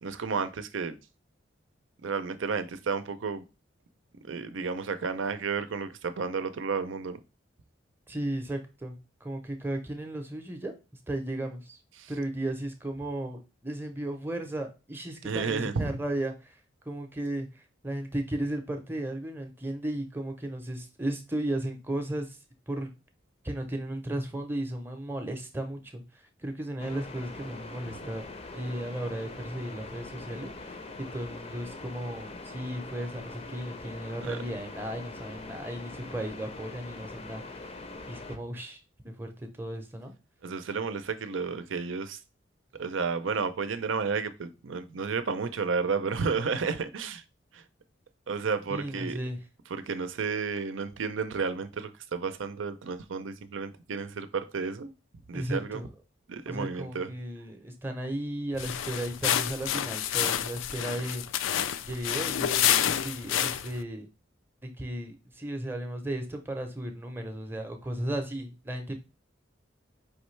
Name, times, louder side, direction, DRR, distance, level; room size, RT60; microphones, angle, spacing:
voice 1, 0.0-1.0 2.0-3.4 4.3-7.2 12.0-12.1 15.2-15.9 34.2-34.4 40.4-42.2 42.7-47.2 47.5-47.6 48.3-49.2 49.7-54.9 55.3-55.8 56.3-57.1, right 5 dB, 80° right, 0.6 m, -32 dB
voice 2, 8.1-10.7 11.1-11.8 12.1-22.9 23.4-37.8 38.1-40.1 48.7-49.4 55.3-55.9 56.5-61.2 61.8-64.1 64.6-69.0, right 1 dB, 10° right, 0.6 m, -35 dB
sound 1, 26.8-38.4, left 2 dB, 30° left, 0.5 m, -43 dB
sound 2, 58.5-63.8, left 10 dB, 85° left, 0.4 m, -28 dB
4.9 x 3.1 x 3.1 m
head